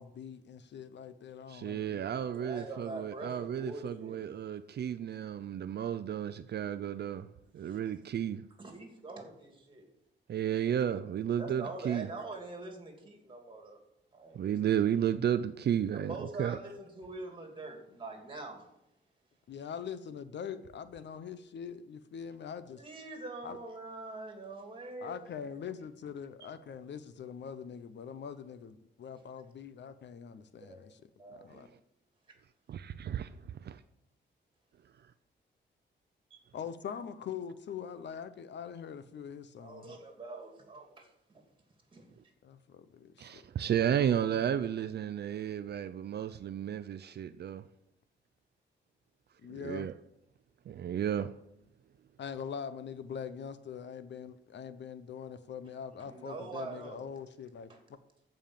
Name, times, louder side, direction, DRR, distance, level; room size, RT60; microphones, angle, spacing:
voice 1, 0.0-2.0 19.5-22.8 23.4-23.6 25.0-31.0 31.3-31.7 36.5-40.0 42.4-43.4 49.4-49.9 52.2-57.7, left 7 dB, 70° left, 0.8 m, -43 dB
voice 2, 1.5-7.3 7.5-8.4 10.3-12.1 14.3-16.6 32.7-33.8 43.2-47.7 49.5-49.9 50.7-51.3, right 9 dB, 60° right, 0.5 m, -33 dB
voice 3, 2.3-4.2 7.6-7.8 8.6-9.9 11.4-13.8 14.1-14.5 15.9-18.6 22.7-25.1 30.6-30.8 31.2-31.7 36.3-36.4 39.6-41.4 41.9-42.1 56.0-57.0 57.7-57.8, right 3 dB, 25° right, 2.8 m, -44 dB
14.5 x 5.5 x 7.3 m
wide cardioid pair, 150°, 19 cm